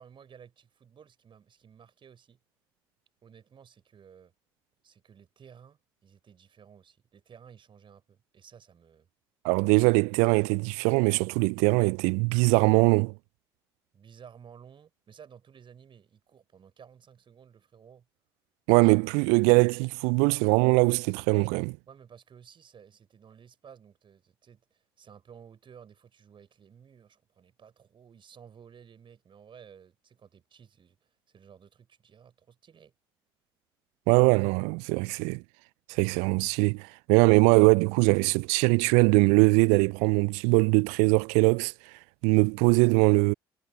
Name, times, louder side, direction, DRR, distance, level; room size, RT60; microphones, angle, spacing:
voice 1, 0.0-2.4 3.2-4.3 4.8-9.1 13.9-18.1 21.9-32.9, right 7 dB, 45° right, 6.8 m, -54 dB
voice 2, 9.4-13.1 18.7-21.8 34.1-35.4 35.9-41.7 42.2-43.3, right 34 dB, 65° right, 0.4 m, -22 dB
figure-of-eight pair, 50°, 12 cm